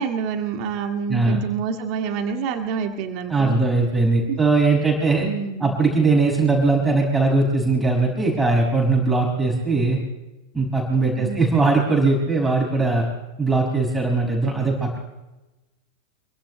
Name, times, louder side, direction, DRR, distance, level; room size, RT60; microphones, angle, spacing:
voice 1, 0.0-3.6 4.3-4.4 5.2-5.7 11.2-11.7, right 6 dB, 40° right, 4 dB, 1.8 m, -27 dB
voice 2, 3.3-5.3 5.6-10.0 10.5-13.1 13.4-15.0, right 3 dB, 5° right, -1 dB, 5.9 m, -20 dB
27.5 x 24.0 x 2.2 m, 1.1 s
figure-of-eight pair, 90°, 0 cm